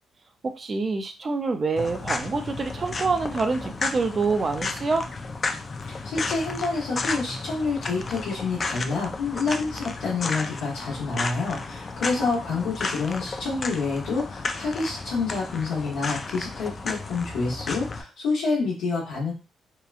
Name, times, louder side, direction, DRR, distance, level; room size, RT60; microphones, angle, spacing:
voice 1, 0.6-5.1, right 4 dB, 35° right, 6 dB, 0.5 m, -26 dB
sound 1, 1.8-18.0, left 3 dB, 35° left, 0.3 m, -33 dB
voice 2, 5.9-19.3, left 4 dB, 85° left, -6 dB, 1.0 m, -28 dB
2.8 x 2.2 x 2.4 m, 0.30 s
cardioid pair, 90°, 0 cm